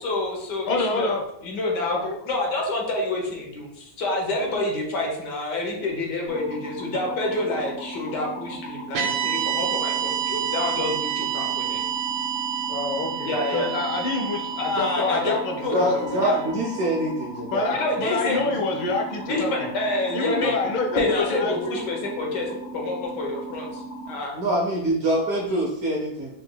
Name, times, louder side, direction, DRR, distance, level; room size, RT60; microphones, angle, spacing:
voice 1, 0.0-11.8 13.2-13.7 14.6-15.8 16.2-16.4 17.7-18.4 19.3-20.5 20.9-22.5 22.7-23.8 24.1-24.3, left 2 dB, 65° left, 0 dB, 1.5 m, -28 dB
voice 2, 0.7-1.2 1.9-2.1 12.7-16.2 17.5-19.5 20.1-21.8, left 3 dB, 80° left, 2 dB, 1.5 m, -27 dB
sound 1, 6.3-24.1, right 1 dB, 5° right, 1.4 m, -37 dB
sound 2, 8.9-17.2, right 9 dB, 90° right, 1.5 m, -29 dB
voice 3, 15.6-17.7 18.4-18.5 24.3-26.3, right 1 dB, 60° right, -2 dB, 1.0 m, -25 dB
5.0 x 3.8 x 2.2 m, 0.78 s
omnidirectional pair, 2.1 m